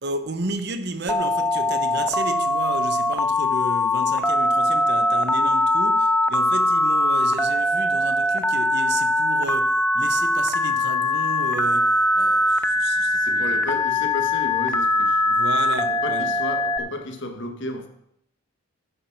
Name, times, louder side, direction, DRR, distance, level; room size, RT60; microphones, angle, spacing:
voice 1, 0.0-13.5 15.3-16.3, right 2 dB, 50° right, 0.9 m, -32 dB
Telephone, 1.1-16.8, left 1 dB, 5° left, 0.4 m, -21 dB
voice 2, 13.1-15.3 15.9-17.9, left 1 dB, 55° left, 1.4 m, -33 dB
10.5 x 7.9 x 5.9 m
head